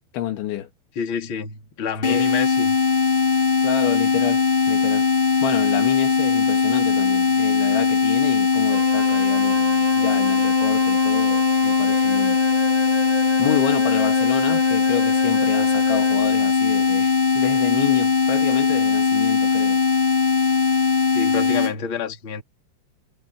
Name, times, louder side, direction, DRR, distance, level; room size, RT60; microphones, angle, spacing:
voice 1, 0.1-0.7 2.1-2.3 3.6-5.1 5.4-12.4 13.4-19.8, left 12 dB, 70° left, 3.8 m, -29 dB
voice 2, 0.9-2.8 21.1-22.4, left 6 dB, 30° left, 3.0 m, -28 dB
sound 1, 2.0-21.7, left 5 dB, 55° left, 0.6 m, -19 dB
Wind instrument woodwind instrument, 8.7-16.3, right 6 dB, 55° right, 5.0 m, -34 dB
omnidirectional pair, 5.7 m